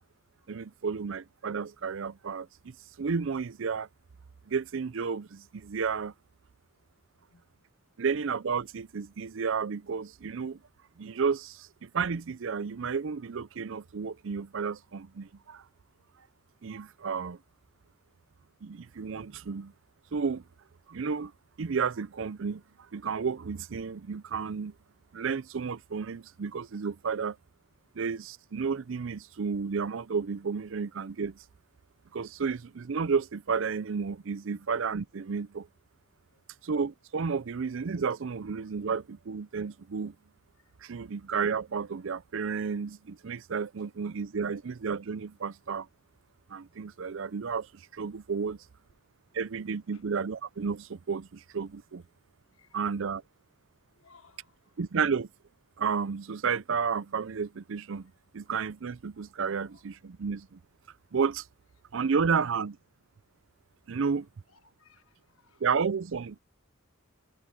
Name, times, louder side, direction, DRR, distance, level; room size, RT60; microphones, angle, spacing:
voice 1, 0.5-3.9 4.5-6.1 8.0-10.6 11.0-15.6 16.6-17.4 18.6-19.7 20.1-20.4 20.9-21.3 21.6-22.6 22.9-24.7 25.1-27.4 28.0-31.4 32.1-35.7 36.6-40.1 40.8-45.9 46.5-48.6 49.3-52.0 52.7-53.2 54.8-55.3 55.8-60.6 61.1-61.5 61.9-62.8 63.9-64.3 65.6-66.4, right 5 dB, 65° right, 0.5 m, -32 dB
voice 2, 54.0-54.5 59.5-59.8 64.5-65.6, left 4 dB, 75° left, 1.5 m, -61 dB
head